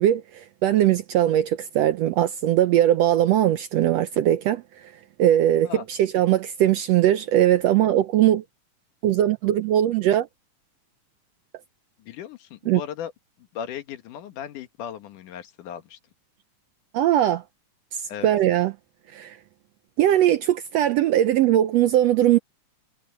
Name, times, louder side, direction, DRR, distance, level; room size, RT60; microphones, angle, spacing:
voice 1, 0.0-4.6 5.2-8.4 9.0-10.3 12.7-12.8 16.9-17.4 17.9-18.7 19.1-19.4 20.0-22.4, right 12 dB, 80° right, 1.5 m, -20 dB
voice 2, 12.0-13.1 13.4-16.0 18.1-18.3, left 9 dB, 75° left, 3.0 m, -37 dB
omnidirectional pair, 3.7 m